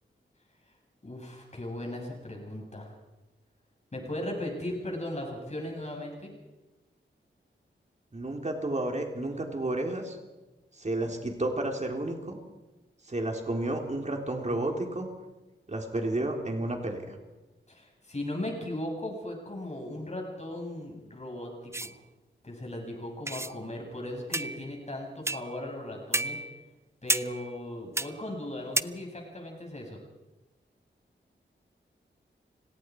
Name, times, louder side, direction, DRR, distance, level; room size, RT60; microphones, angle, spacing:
voice 1, 1.0-2.9 3.9-6.3 17.7-22.0 22.4-26.4 27.0-30.0, left 1 dB, 35° left, 0 dB, 7.2 m, -37 dB
voice 2, 8.1-10.2 10.8-12.4 13.1-15.1 15.7-17.2, right 1 dB, 35° right, 2 dB, 3.9 m, -31 dB
sound 1, 21.7-21.9 23.3-23.5 24.3-24.8 25.3-25.6 26.1-26.6 27.1-27.6 28.0-28.2 28.8-28.9, right 2 dB, 15° right, 0.6 m, -31 dB
30.0 x 18.0 x 4.9 m, 1.1 s
wide cardioid pair, 85°, 20 cm